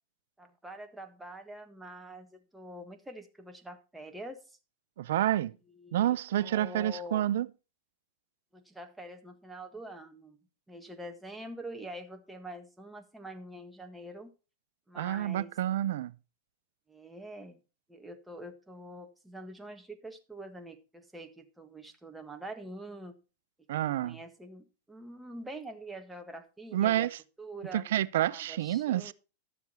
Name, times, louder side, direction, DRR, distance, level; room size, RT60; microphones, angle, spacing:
voice 1, 0.4-4.6 5.8-6.1 6.4-7.2 8.5-10.4 10.7-14.3 14.9-15.5 16.9-17.6 17.9-23.2 24.0-27.1 27.4-27.9 28.3-29.1, right 1 dB, 5° right, 1.6 m, -45 dB
voice 2, 5.0-5.5 5.9-7.5 15.0-16.1 23.7-24.2 26.7-27.2 27.7-29.1, right 12 dB, 75° right, 0.6 m, -29 dB
12.0 x 7.2 x 4.4 m
hypercardioid pair, 125°, 0 cm